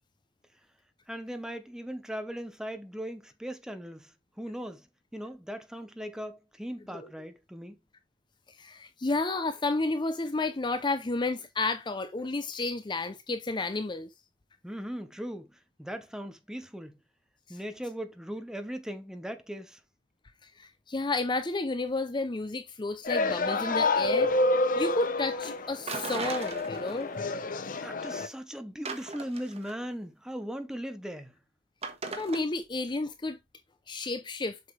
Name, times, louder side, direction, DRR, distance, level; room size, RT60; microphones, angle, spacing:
voice 1, 1.1-4.1 4.4-4.9 5.1-7.8 14.6-17.0 17.5-19.8 27.7-31.3, equal, 5° right, 1.0 m, -39 dB
voice 2, 8.6-14.1 17.5-17.6 20.4-24.3 24.8-27.2 32.1-33.4 33.9-34.6, left 3 dB, 25° left, 0.5 m, -31 dB
sound 1, 23.0-28.3, left 2 dB, 45° left, 0.9 m, -28 dB
sound 2, 25.9-27.2 27.5-27.6 28.8-29.8 31.8-32.4, right 3 dB, 35° right, 1.5 m, -37 dB
7.8 x 5.9 x 3.2 m
head